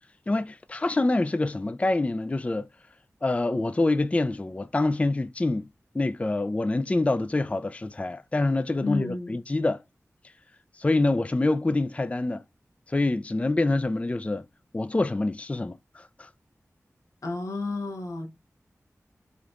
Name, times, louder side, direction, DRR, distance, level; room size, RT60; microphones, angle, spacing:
voice 1, 0.3-2.7 3.2-5.7 5.9-9.8 10.7-12.4 12.9-14.5 14.7-16.3, left 2 dB, 25° left, 0.3 m, -26 dB
voice 2, 8.8-9.4 17.2-18.3, left 3 dB, 85° left, 1.3 m, -31 dB
5.0 x 3.0 x 2.4 m
wide cardioid pair, 55°, 5 cm